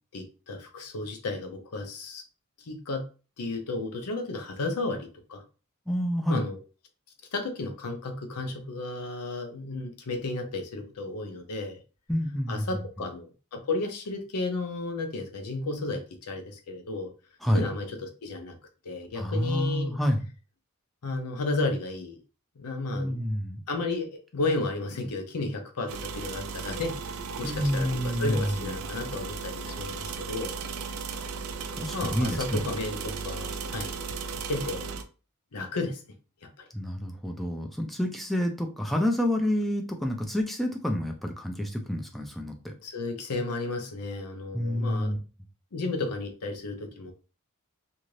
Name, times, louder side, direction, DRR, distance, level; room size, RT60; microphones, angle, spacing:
voice 1, 0.1-2.2 2.7-3.1 3.4-5.4 6.3-6.6 7.3-11.8 12.5-17.1 17.5-18.5 18.8-20.0 21.0-22.2 22.6-23.2 23.7-30.6 31.9-34.0 34.5-34.9 35.5-36.0 42.8-45.2 45.7-47.1, left 2 dB, 85° left, 5 dB, 0.6 m, -33 dB
voice 2, 5.9-6.4 12.1-12.9 17.4-17.6 19.2-20.2 22.9-23.6 27.4-28.8 31.7-32.6 36.7-42.7 44.5-45.2, equal, ahead, 2 dB, 0.4 m, -28 dB
sound 1, 25.9-35.0, right 5 dB, 65° right, 0.4 m, -36 dB
2.6 x 2.5 x 3.1 m, 0.34 s
head